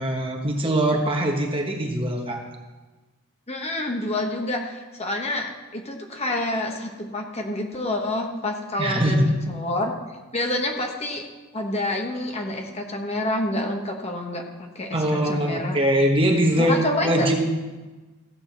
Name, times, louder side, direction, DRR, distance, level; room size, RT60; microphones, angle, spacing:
voice 1, 0.0-2.4 8.8-9.3 14.9-17.4, right 1 dB, 25° right, 2 dB, 1.3 m, -22 dB
voice 2, 3.5-9.9 10.3-11.3 11.5-14.4 14.7-15.8 16.6-17.3, left 1 dB, 30° left, 2 dB, 1.2 m, -28 dB
15.0 x 5.0 x 7.3 m, 1.2 s
head